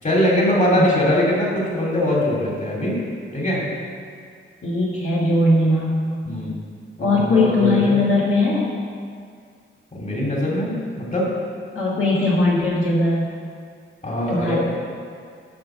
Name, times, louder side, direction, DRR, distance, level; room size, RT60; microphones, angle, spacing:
voice 1, 0.0-3.0 3.3-3.6 6.3-6.5 7.0-8.0 9.9-11.3 14.0-14.6, left 1 dB, 35° left, -4 dB, 2.8 m, -21 dB
voice 2, 0.8-1.1 4.6-6.0 7.0-8.7 11.7-13.3 14.3-14.6, left 2 dB, 80° left, -6 dB, 1.7 m, -19 dB
10.0 x 5.6 x 6.3 m, 2.1 s
wide cardioid pair, 80°, 21 cm